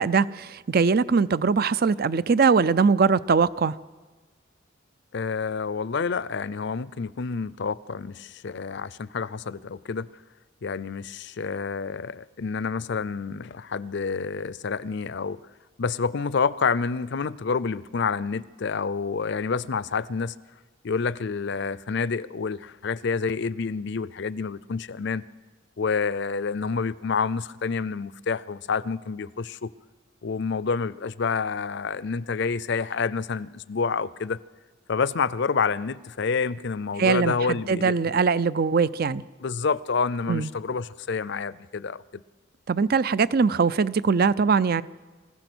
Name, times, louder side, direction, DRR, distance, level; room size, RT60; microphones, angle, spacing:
voice 1, 0.0-3.7 37.0-39.2 40.3-40.5 42.7-44.8, right 5 dB, 50° right, 0.5 m, -21 dB
voice 2, 5.1-10.1 10.6-15.4 15.8-20.4 20.8-25.3 25.8-29.7 30.2-34.4 34.9-38.0 39.4-42.2, left 5 dB, 60° left, 0.5 m, -28 dB
27.0 x 15.5 x 6.2 m
head